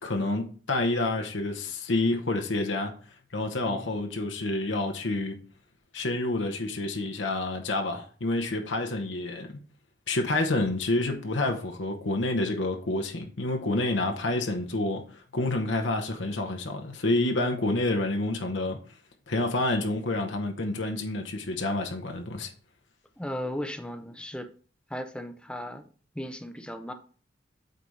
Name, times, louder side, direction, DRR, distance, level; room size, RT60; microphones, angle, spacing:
voice 1, 0.0-2.9 3.3-5.4 5.9-9.6 10.1-15.0 15.3-18.8 19.3-22.5, left 2 dB, 75° left, 1.0 m, -28 dB
voice 2, 23.2-24.5 24.9-26.9, equal, 5° left, 0.5 m, -36 dB
8.3 x 4.0 x 3.2 m
head